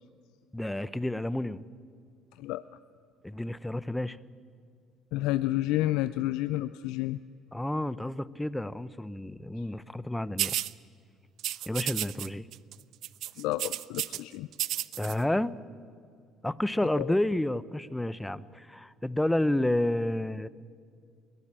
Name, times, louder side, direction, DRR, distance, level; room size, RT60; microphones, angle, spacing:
voice 1, 0.5-1.7 3.2-4.2 7.5-10.6 11.7-12.5 15.0-15.5 16.4-20.5, left 1 dB, 5° left, 17 dB, 0.7 m, -30 dB
voice 2, 5.1-7.2 13.4-14.5 17.0-17.1, left 15 dB, 80° left, 14 dB, 0.4 m, -30 dB
sound 1, 10.4-10.7 11.4-12.3 12.5-12.7 13.0-14.2 14.5-15.1, right 13 dB, 65° right, 0.5 m, -32 dB
22.0 x 15.0 x 8.9 m, 2.2 s
supercardioid pair, 80°, 0 cm